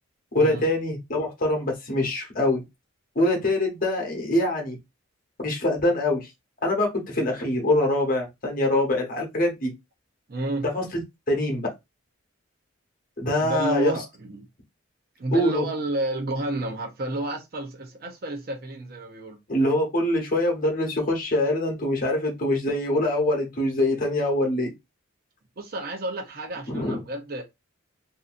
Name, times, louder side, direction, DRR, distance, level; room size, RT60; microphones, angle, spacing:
voice 1, 0.3-2.6 3.1-4.8 5.4-6.3 6.6-9.7 10.6-11.0 11.3-11.7 13.2-14.0 15.3-15.6 19.5-24.7 26.7-27.0, left 1 dB, 45° left, 1.0 m, -24 dB
voice 2, 10.3-10.7 13.4-14.5 15.2-19.4 25.6-27.4, right 1 dB, 45° right, 0.7 m, -30 dB
2.7 x 2.6 x 2.5 m
head